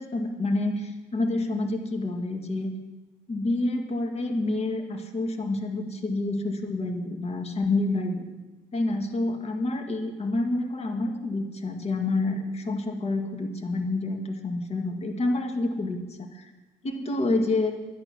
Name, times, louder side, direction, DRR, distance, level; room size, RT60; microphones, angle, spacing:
voice 1, 0.0-2.7 3.3-8.3 8.7-16.5 16.8-17.7, left 2 dB, 35° left, 4 dB, 1.9 m, -28 dB
12.0 x 10.0 x 6.1 m, 1.2 s
cardioid pair, 110°, 17 cm